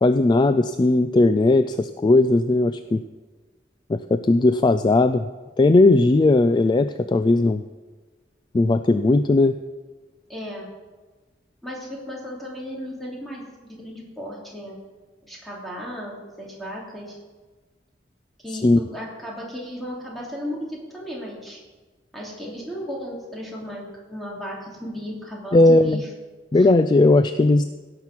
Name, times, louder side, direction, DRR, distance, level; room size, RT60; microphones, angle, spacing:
voice 1, 0.0-3.0 3.9-5.3 5.6-7.6 8.5-9.5 18.5-18.8 25.5-26.0 26.5-27.6, left 2 dB, 25° left, 10 dB, 0.3 m, -17 dB
voice 2, 10.3-10.7 11.6-14.7 15.2-17.1 18.4-21.6 22.1-26.1 26.5-26.7, equal, ahead, -4 dB, 2.9 m, -35 dB
17.0 x 5.9 x 6.0 m, 1.3 s
head